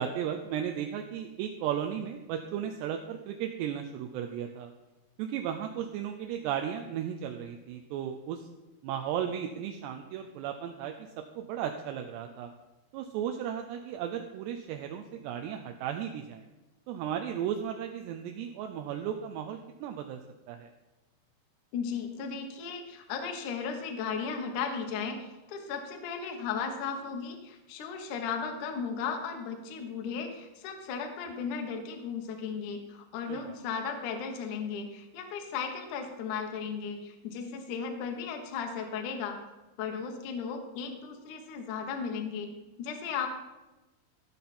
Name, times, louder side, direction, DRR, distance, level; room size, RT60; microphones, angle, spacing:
voice 1, 0.0-4.7 5.2-8.5 8.8-11.1 11.4-12.5 12.9-16.5 16.9-20.2 20.5-20.7 33.3-33.6, right 9 dB, 85° right, 5 dB, 2.5 m, -35 dB
voice 2, 21.7-39.4 39.8-42.5 42.8-43.3, left 6 dB, 85° left, 4 dB, 1.7 m, -35 dB
16.5 x 5.9 x 4.2 m, 1.1 s
omnidirectional pair, 5.4 m